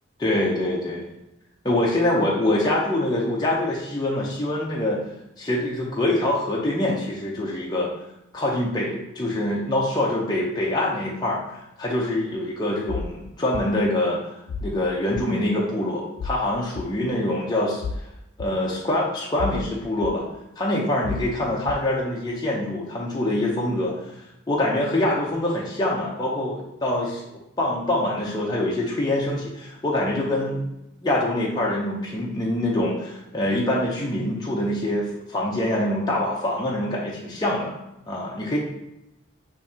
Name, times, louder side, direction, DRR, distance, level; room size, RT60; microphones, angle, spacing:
voice 1, 0.2-1.1 1.6-5.0 5.4-7.9 8.3-11.4 11.8-14.2 14.6-17.8 18.4-20.3 20.6-24.0 24.5-27.2 27.6-30.6 31.0-37.7 38.1-38.6, left 1 dB, 20° left, -4 dB, 0.6 m, -24 dB
sound 1, 12.9-13.1 13.5-13.7 14.5-14.7 15.2-15.3 16.2-16.4 16.8-16.9 17.8-18.0 18.4-18.5 19.4-19.7 20.0-20.1 21.0-21.3 21.7-21.8, left 4 dB, 85° left, 0.3 m, -31 dB
6.8 x 2.6 x 2.8 m, 0.88 s
head